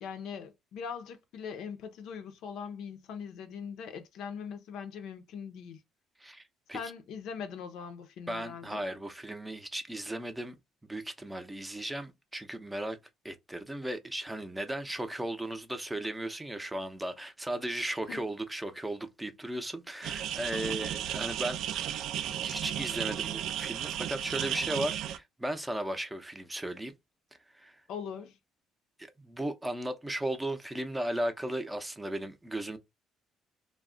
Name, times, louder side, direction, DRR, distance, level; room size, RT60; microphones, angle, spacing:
voice 1, 0.0-5.8 6.7-8.8 18.1-18.2 27.9-28.4, left 6 dB, 75° left, 0.5 m, -41 dB
voice 2, 6.2-6.8 8.3-13.0 13.2-21.7 22.4-26.9 27.5-27.8 29.0-32.8, right 1 dB, 10° right, 0.5 m, -36 dB
sound 1, 20.0-25.2, right 10 dB, 75° right, 0.3 m, -34 dB
2.3 x 2.1 x 3.6 m
cardioid pair, 105°, 0 cm